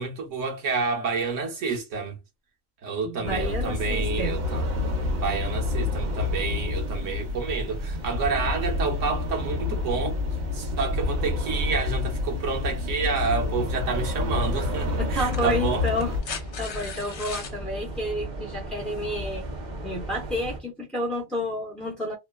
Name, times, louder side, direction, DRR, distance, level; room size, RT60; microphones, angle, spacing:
voice 1, 0.0-2.2 2.8-4.7 5.1-10.2 10.5-15.8, right 4 dB, 70° right, 1.2 m, -29 dB
voice 2, 3.0-4.4 15.0-19.4 19.8-22.1, left 1 dB, ahead, 0.5 m, -30 dB
sound 1, 3.2-16.2, left 2 dB, 85° right, 1.3 m, -28 dB
sound 2, 5.6-20.6, right 1 dB, 45° right, 0.7 m, -39 dB
sound 3, 14.0-14.1 15.1-17.6 19.1-19.2, left 6 dB, 65° left, 0.9 m, -38 dB
2.9 x 2.1 x 2.2 m
omnidirectional pair, 1.4 m